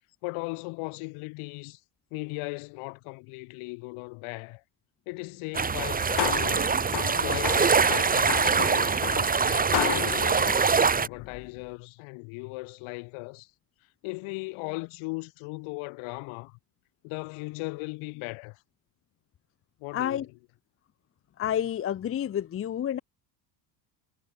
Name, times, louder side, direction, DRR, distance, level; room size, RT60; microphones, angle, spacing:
voice 1, 0.2-1.8 2.1-4.6 5.1-6.7 7.2-8.9 9.5-13.5 14.0-16.6 17.0-18.6 19.8-20.4, left 28 dB, 75° left, 3.3 m, -37 dB
sound 1, 5.5-11.1, right 5 dB, 15° right, 1.0 m, -24 dB
sound 2, 5.7-11.6, left 14 dB, 55° left, 2.7 m, -34 dB
voice 2, 19.9-20.3 21.4-23.0, left 10 dB, 25° left, 0.6 m, -29 dB
supercardioid pair, 85°, 50 cm